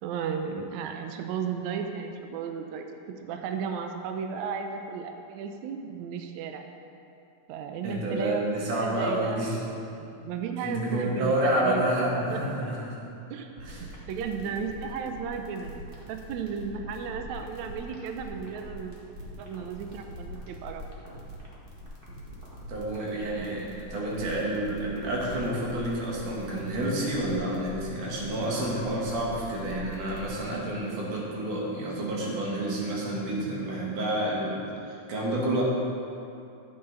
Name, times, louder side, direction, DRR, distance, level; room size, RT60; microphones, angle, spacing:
voice 1, 0.0-2.9 3.2-6.6 7.5-8.5 8.8-9.5 10.0-12.4 13.3-19.0 19.4-20.9, right 6 dB, 90° right, 5 dB, 1.6 m, -34 dB
voice 2, 7.8-9.6 10.6-13.1 13.6-13.9 22.7-34.6 34.9-35.6, right 1 dB, 65° right, -4 dB, 3.1 m, -29 dB
sound 1, 13.6-30.4, equal, 50° right, 0.6 m, -43 dB
13.0 x 7.9 x 3.9 m, 2.6 s
omnidirectional pair, 4.0 m